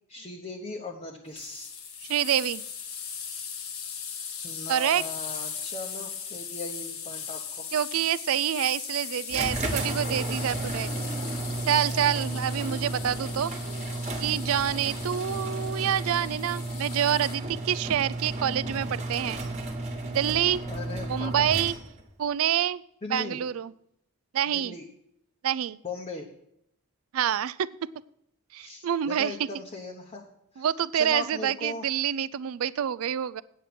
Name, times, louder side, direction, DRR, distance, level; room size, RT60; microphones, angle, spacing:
voice 1, 0.1-1.7 4.4-7.7 10.3-10.6 11.9-12.4 14.0-14.3 20.7-21.4 23.0-23.4 24.5-24.9 25.8-26.3 28.6-30.3 30.5-30.7 30.9-31.8, left 3 dB, 30° left, 0 dB, 0.9 m, -39 dB
sound 1, 1.4-17.4, left 7 dB, 75° left, 1.5 m, -39 dB
voice 2, 2.1-2.6 4.7-5.0 7.7-10.9 11.7-13.5 14.2-19.4 20.1-20.6 21.1-21.7 22.2-22.8 23.1-23.7 24.3-24.7 25.4-25.8 27.1-27.7 28.5-29.4 30.6-33.4, right 9 dB, 70° right, 18 dB, 0.4 m, -27 dB
sound 2, 9.3-22.1, right 2 dB, 30° right, 1.4 m, -33 dB
9.2 x 8.5 x 5.9 m, 0.78 s
head